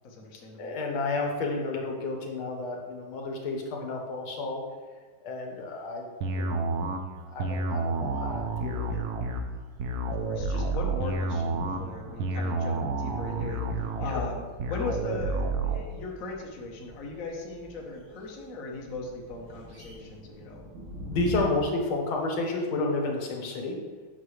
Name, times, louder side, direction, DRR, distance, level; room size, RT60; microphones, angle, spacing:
voice 1, 0.0-0.7 10.1-20.7, left 3 dB, 50° left, -1 dB, 1.2 m, -38 dB
voice 2, 0.6-4.6 5.2-6.6 7.3-9.0 21.1-23.8, left 2 dB, 80° left, 1 dB, 2.0 m, -31 dB
sound 1, 6.2-15.8, right 2 dB, 70° right, 0.9 m, -30 dB
sound 2, 8.8-21.5, equal, 90° right, 2.2 m, -46 dB
8.1 x 6.2 x 3.2 m, 1.5 s
omnidirectional pair, 2.3 m